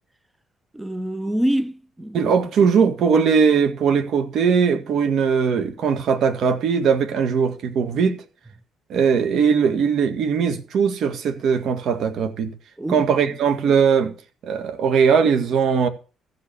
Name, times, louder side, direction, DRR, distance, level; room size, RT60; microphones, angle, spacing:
voice 1, 0.7-2.3 12.8-13.3, right 1 dB, 10° right, 0.9 m, -26 dB
voice 2, 2.1-8.2 8.9-12.5 12.9-14.1 14.4-15.9, right 6 dB, 65° right, 1.8 m, -20 dB
14.5 x 5.6 x 7.1 m
cardioid pair, 90°, 0 cm